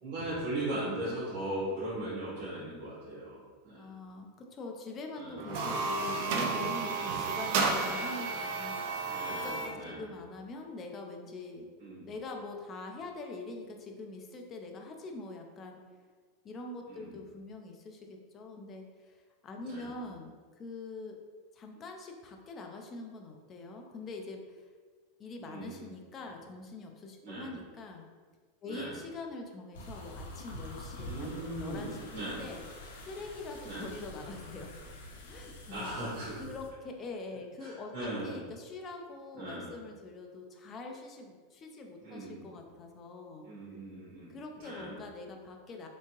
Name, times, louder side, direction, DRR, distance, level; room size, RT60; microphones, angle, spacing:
voice 1, 0.0-3.9 5.1-5.4 7.0-7.4 9.0-10.1 11.8-12.1 16.9-17.2 19.6-19.9 25.4-25.9 27.2-27.5 28.6-28.9 31.0-32.4 33.7-33.8 35.7-36.4 37.6-38.4 39.3-39.7 42.0-42.5 43.4-44.9, right 1 dB, 40° right, -10 dB, 1.5 m, -39 dB
voice 2, 3.8-11.7 12.0-15.8 16.4-21.2 21.5-24.6 25.2-28.1 28.6-32.1 32.4-32.7 33.0-34.7 35.3-36.0 36.4-43.5 44.3-45.9, left 3 dB, 25° left, 2 dB, 0.4 m, -44 dB
sound 1, 5.4-9.8, right 4 dB, 55° right, 0.5 m, -32 dB
sound 2, 29.7-36.7, left 1 dB, 85° left, 0.6 m, -46 dB
3.4 x 2.7 x 2.9 m, 1.5 s
supercardioid pair, 140°, 0 cm